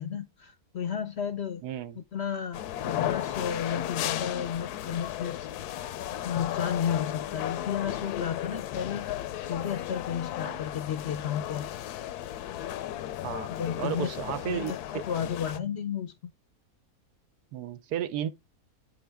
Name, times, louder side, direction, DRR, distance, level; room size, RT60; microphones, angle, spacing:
voice 1, 0.0-1.6 2.1-5.5 6.2-9.1 9.4-11.7 13.5-14.1 14.5-16.1, left 8 dB, 60° left, 0.7 m, -32 dB
voice 2, 1.6-2.0 10.4-10.5 13.2-13.5 13.8-15.3 17.5-18.3, right 10 dB, 85° right, 1.2 m, -34 dB
sound 1, 2.5-15.6, left 12 dB, 80° left, 1.1 m, -35 dB
8.6 x 5.8 x 3.4 m
omnidirectional pair, 1.7 m